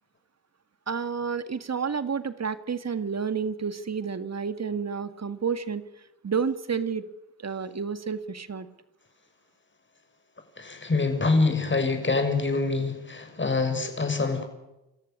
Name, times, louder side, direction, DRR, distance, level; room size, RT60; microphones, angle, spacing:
voice 1, 0.9-5.8 6.2-7.0 7.4-8.7, right 6 dB, 35° right, 12 dB, 2.0 m, -30 dB
voice 2, 10.6-14.5, left 3 dB, 25° left, 7 dB, 6.2 m, -25 dB
29.5 x 14.0 x 8.9 m, 0.93 s
supercardioid pair, 55°, 43 cm